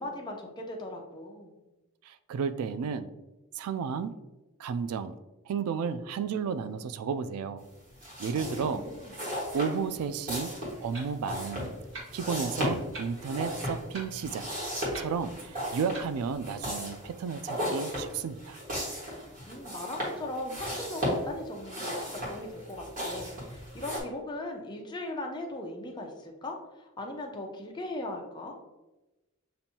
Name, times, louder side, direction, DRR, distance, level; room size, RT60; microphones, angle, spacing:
voice 1, 0.0-1.5 8.4-9.1 19.5-28.5, left 1 dB, 20° left, 1 dB, 0.6 m, -39 dB
voice 2, 2.0-3.1 3.5-4.1 4.6-5.1 5.5-7.6 8.2-8.9 9.5-10.5 10.8-11.7 12.1-14.5 15.0-18.6, right 6 dB, 85° right, 12 dB, 0.3 m, -32 dB
sound 1, 7.9-24.0, equal, 40° right, 1.5 m, -36 dB
Clock, 10.7-16.6, right 2 dB, 60° right, 1.2 m, -48 dB
6.9 x 2.6 x 2.8 m, 1.0 s
head